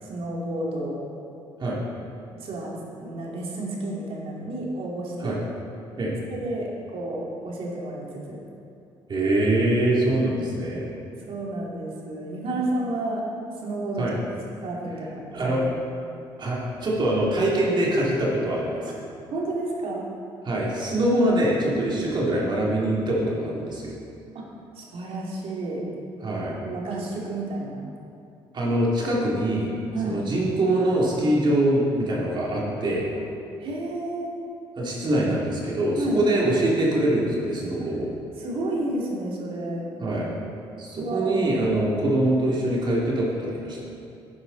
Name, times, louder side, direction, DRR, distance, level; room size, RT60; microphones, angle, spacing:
voice 1, 0.0-1.1 2.4-5.4 6.3-8.4 11.2-13.2 13.6-14.2 14.6-15.6 19.3-20.1 24.7-25.8 26.6-27.9 29.9-30.3 33.6-34.3 35.9-36.4 37.8-37.9 38.4-39.9 41.0-41.4, right 1 dB, 60° right, -3 dB, 2.7 m, -31 dB
voice 2, 9.1-10.9 14.0-14.1 15.3-15.6 16.4-18.9 20.4-23.9 26.2-26.6 28.5-29.7 30.1-33.1 34.8-38.1 40.0-40.3 40.8-43.8, right 1 dB, 45° right, -5 dB, 2.6 m, -24 dB
11.0 x 9.6 x 4.0 m, 2.5 s
supercardioid pair, 70°, 11 cm